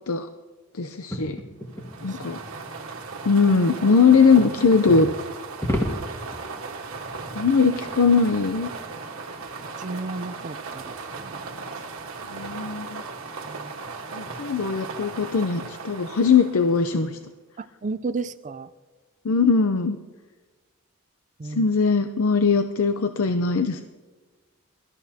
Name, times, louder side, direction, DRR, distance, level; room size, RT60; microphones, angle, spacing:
voice 1, 0.7-1.4 2.0-2.4 3.3-5.1 7.3-8.7 12.3-13.0 14.1-17.2 19.2-20.0 21.4-23.8, left 5 dB, 75° left, 0.6 m, -20 dB
sound 1, 1.1-1.9 4.1-5.1 5.6-6.6, equal, 15° left, 1.6 m, -29 dB
sound 2, 1.7-17.1, right 4 dB, 70° right, 1.5 m, -37 dB
voice 2, 2.0-2.3 9.8-11.5 13.4-13.8 17.6-18.7 21.4-21.7, right 3 dB, 35° right, 0.5 m, -34 dB
23.0 x 13.5 x 2.8 m
head